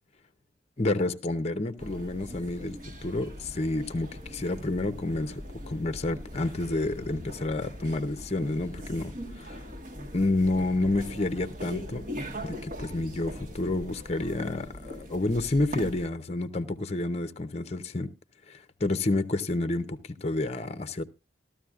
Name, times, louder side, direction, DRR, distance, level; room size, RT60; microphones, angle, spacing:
voice 1, 0.8-9.6 10.1-12.0 12.4-18.1 18.5-21.0, left 2 dB, 35° left, 0.7 m, -29 dB
sound 1, 1.8-16.1, equal, 45° right, 1.3 m, -41 dB
14.5 x 13.0 x 2.4 m
head